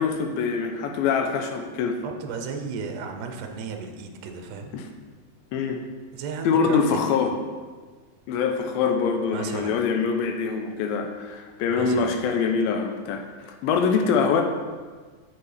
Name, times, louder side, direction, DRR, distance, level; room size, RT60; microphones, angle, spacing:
voice 1, 0.0-2.0 4.7-4.9 5.5-5.8 6.4-7.3 8.3-14.4, left 5 dB, 80° left, 4 dB, 2.4 m, -24 dB
voice 2, 2.0-4.7 6.1-7.3 9.3-9.8 11.7-12.2, right 5 dB, 75° right, 4 dB, 1.9 m, -34 dB
8.2 x 7.1 x 3.3 m, 1.4 s
omnidirectional pair, 4.3 m